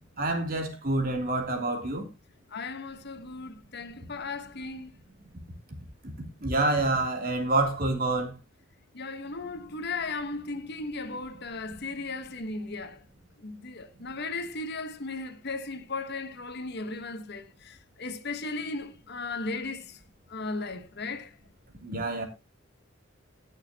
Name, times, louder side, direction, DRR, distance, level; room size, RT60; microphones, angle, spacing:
voice 1, 0.2-2.0 6.4-8.3 21.8-22.2, right 2 dB, 45° right, 3.1 m, -27 dB
voice 2, 2.5-4.9 8.9-13.0 13.4-20.0 20.3-21.4, left 3 dB, 55° left, 1.2 m, -36 dB
19.5 x 6.6 x 2.9 m
head